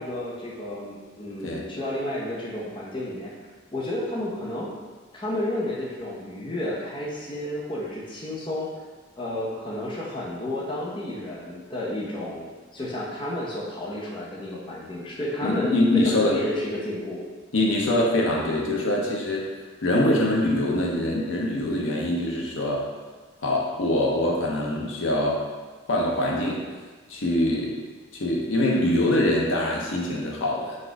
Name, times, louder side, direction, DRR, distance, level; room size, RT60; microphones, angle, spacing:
voice 1, 0.0-3.3 3.7-4.7 5.1-8.7 9.2-17.2, left 1 dB, 25° left, -5 dB, 0.7 m, -31 dB
voice 2, 15.4-16.4 17.5-19.5 19.8-22.9 23.4-25.4 25.9-26.6 27.1-27.8 28.1-30.8, left 1 dB, 85° left, -2 dB, 0.7 m, -24 dB
4.1 x 2.6 x 4.5 m, 1.4 s
head